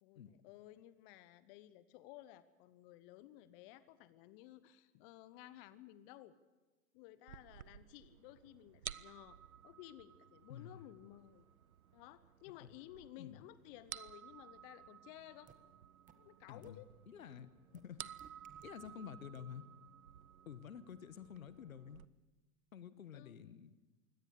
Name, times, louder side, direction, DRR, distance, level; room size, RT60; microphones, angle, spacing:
voice 1, 0.0-6.3 6.9-9.4 9.6-11.5 11.9-15.5 16.2-16.9 23.1-23.4, left 14 dB, 40° left, 15 dB, 1.0 m, -56 dB
sound 1, 7.3-22.1, right 9 dB, 85° right, 0.7 m, -55 dB
voice 2, 10.5-10.8 12.5-12.8 13.2-13.4 16.5-17.5 17.7-18.0 18.6-19.6 20.5-22.0 22.7-23.7, left 8 dB, 75° left, 15 dB, 1.2 m, -50 dB
sound 2, 15.5-15.6 16.1-16.2 16.6-16.7 17.7-17.8 18.2-18.9 19.3-19.4, right 8 dB, 20° right, 1.5 m, -60 dB
23.5 x 17.5 x 6.8 m, 1.2 s
figure-of-eight pair, 100°, 41 cm